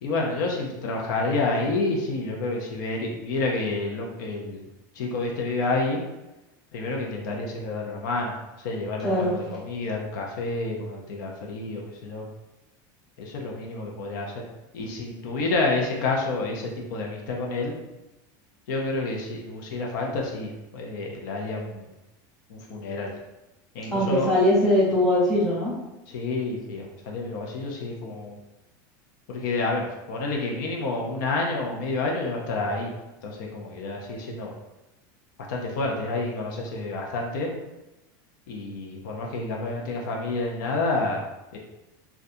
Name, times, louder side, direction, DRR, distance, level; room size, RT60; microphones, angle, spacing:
voice 1, 0.0-4.7 4.9-6.0 6.7-12.2 13.2-14.4 14.7-17.7 18.7-21.9 22.5-23.1 23.7-24.3 26.1-28.4 29.3-32.9 33.2-34.5 35.5-37.5 38.5-41.2 41.5-41.6, left 3 dB, 70° left, -1 dB, 0.6 m, -29 dB
voice 2, 23.9-25.7, left 1 dB, 5° left, -9 dB, 1.1 m, -21 dB
3.7 x 2.3 x 2.7 m, 1.0 s
supercardioid pair, 160°, 11 cm